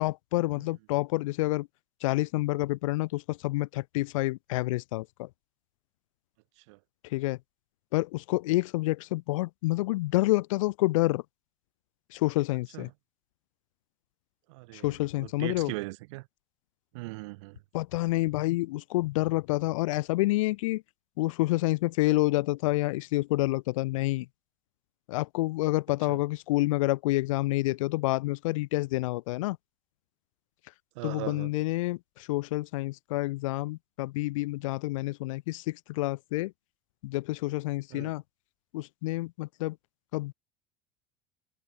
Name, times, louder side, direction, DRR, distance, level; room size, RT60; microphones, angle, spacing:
voice 1, 0.0-1.7 2.0-5.3 7.1-7.4 7.9-11.2 12.1-12.9 14.7-15.7 17.7-20.8 21.2-24.2 25.1-29.6 31.0-36.5 37.0-38.2 38.7-39.7 40.1-40.3, left 20 dB, 80° left, 1.2 m, -28 dB
voice 2, 14.5-16.3 16.9-17.6 26.1-26.2 30.9-31.5 37.9-38.1, right 24 dB, 65° right, 3.2 m, -39 dB
supercardioid pair, 175°, 17 cm